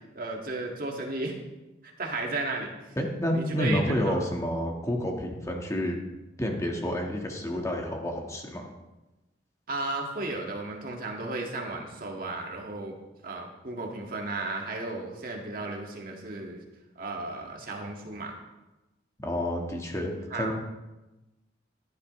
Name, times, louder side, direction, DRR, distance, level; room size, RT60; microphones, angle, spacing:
voice 1, 0.2-1.4 1.8-2.7 3.3-4.2 9.7-12.9 13.2-16.6 17.0-18.3 20.3-20.5, right 2 dB, 50° right, 0 dB, 2.0 m, -34 dB
voice 2, 3.0-6.0 6.4-8.7 19.2-20.5, equal, 15° left, 1 dB, 1.5 m, -29 dB
15.0 x 11.0 x 3.2 m, 1.1 s
head